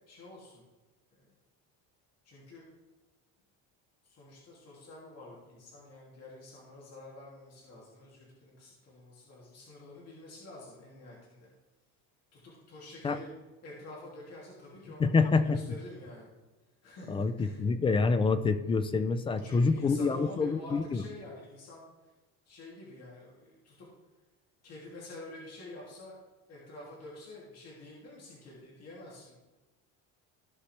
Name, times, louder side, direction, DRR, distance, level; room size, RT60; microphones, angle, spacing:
voice 1, 0.1-0.6 1.2-1.3 2.2-2.6 4.0-11.5 12.3-13.3 13.6-15.1 15.4-16.3 16.8-17.6 19.3-21.8 22.5-23.9 24.6-26.2 26.5-29.4, left 2 dB, 40° left, -5 dB, 2.8 m, -48 dB
voice 2, 15.0-15.6 17.1-21.0, left 4 dB, 15° left, 12 dB, 0.3 m, -27 dB
15.5 x 5.6 x 3.3 m, 1.2 s
cardioid pair, 145°, 39 cm